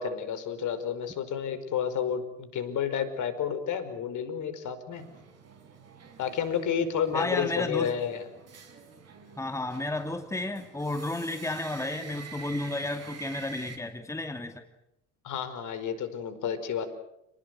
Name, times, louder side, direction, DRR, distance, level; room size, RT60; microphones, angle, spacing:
voice 1, 0.0-5.0 6.2-8.3 15.2-16.9, left 8 dB, 50° left, 11 dB, 5.1 m, -31 dB
sound 1, 4.9-13.8, right 5 dB, 40° right, 6.0 m, -47 dB
voice 2, 7.1-7.9 9.4-14.7, left 2 dB, 10° left, 7 dB, 2.5 m, -32 dB
30.0 x 20.5 x 8.0 m, 0.81 s
hypercardioid pair, 70°, 38 cm